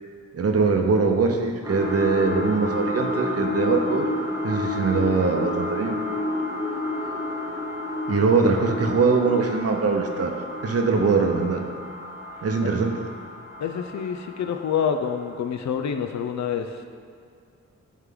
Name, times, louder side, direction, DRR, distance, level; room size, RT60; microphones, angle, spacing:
voice 1, 0.3-4.1 4.4-6.0 8.1-10.3 10.6-11.6 12.4-12.9, right 4 dB, 55° right, 3 dB, 0.7 m, -22 dB
sound 1, 1.6-14.8 15.3-15.4, left 1 dB, 10° right, 0.8 m, -30 dB
voice 2, 13.6-16.8, left 7 dB, 70° left, 6 dB, 0.5 m, -27 dB
9.1 x 3.2 x 3.8 m, 2.3 s
cardioid pair, 65°, 29 cm